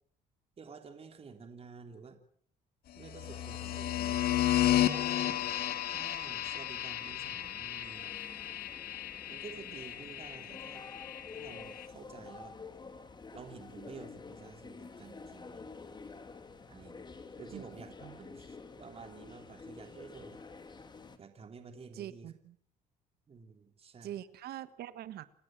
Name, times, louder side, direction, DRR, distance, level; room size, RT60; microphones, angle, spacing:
voice 1, 0.6-2.2 2.9-4.2 4.7-5.4 5.9-8.2 9.3-10.8 11.3-12.5 13.3-15.7 16.7-17.1 17.4-20.4 21.2-22.3 23.3-24.2, right 5 dB, 35° right, 6 dB, 3.2 m, -50 dB
sound 1, 3.1-11.9, left 13 dB, 65° left, 2.4 m, -33 dB
sound 2, 3.2-21.2, left 4 dB, 25° left, 2.8 m, -50 dB
voice 2, 21.9-22.5 24.0-25.3, right 12 dB, 70° right, 14 dB, 1.6 m, -43 dB
29.0 x 17.0 x 7.7 m, 0.63 s
cardioid pair, 110°, 17 cm